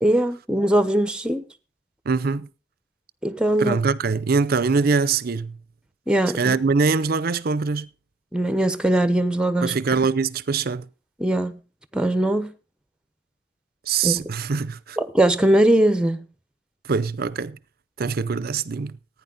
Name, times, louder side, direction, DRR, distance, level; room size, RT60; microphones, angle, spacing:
voice 1, 0.0-1.4 3.2-3.8 6.1-6.5 8.3-9.7 11.2-11.6 11.9-12.5 14.0-14.2 15.0-16.2, right 1 dB, 5° right, 0.9 m, -20 dB
voice 2, 2.1-2.5 3.6-5.6 6.3-7.9 9.6-10.9 13.9-15.0 16.8-17.6 18.0-19.0, right 4 dB, 55° right, 0.6 m, -23 dB
15.0 x 9.6 x 4.0 m
head